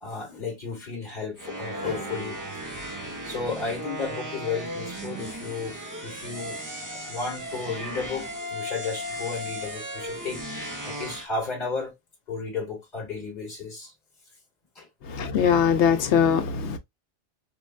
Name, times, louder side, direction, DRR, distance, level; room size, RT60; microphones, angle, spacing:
voice 1, 0.0-2.4 3.2-5.7 6.0-6.6 6.9-11.9 12.3-13.9 14.7-14.9, left 4 dB, 40° left, 1.3 m, -33 dB
sound 1, 1.4-11.3, equal, 25° right, 0.5 m, -36 dB
voice 2, 15.1-16.8, left 7 dB, 75° left, 0.9 m, -21 dB
4.6 x 2.2 x 2.3 m
omnidirectional pair, 1.2 m